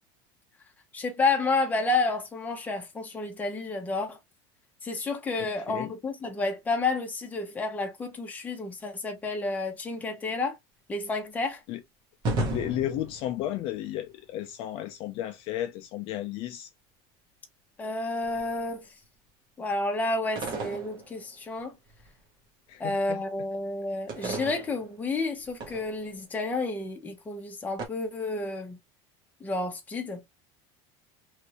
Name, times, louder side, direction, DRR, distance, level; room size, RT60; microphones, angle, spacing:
voice 1, 0.9-4.2 4.8-10.6 10.9-11.6 17.8-18.9 19.6-21.8 22.8-28.8 29.4-30.2, left 3 dB, 10° left, 0.9 m, -30 dB
voice 2, 5.4-5.9 11.7-11.8 12.5-16.7 22.7-23.2, left 12 dB, 45° left, 0.5 m, -33 dB
sound 1, 12.2-13.9 18.2-18.6 20.4-21.6 21.9-22.1 24.1-26.1 27.8-27.9, right 2 dB, 35° right, 1.2 m, -34 dB
3.2 x 2.6 x 2.8 m
cardioid pair, 165°, 13 cm